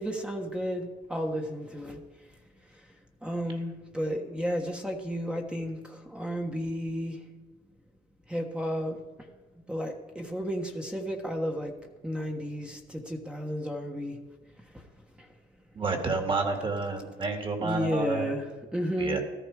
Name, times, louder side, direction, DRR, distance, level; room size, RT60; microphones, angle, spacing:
voice 1, 0.0-2.0 3.2-7.2 8.3-9.0 9.7-11.7 12.0-14.2 17.6-19.2, equal, 5° right, 2 dB, 1.4 m, -32 dB
voice 2, 15.7-18.2 19.0-19.2, right 3 dB, 30° right, 4 dB, 2.4 m, -30 dB
14.0 x 13.5 x 5.0 m, 1.3 s
cardioid pair, 110°, 17 cm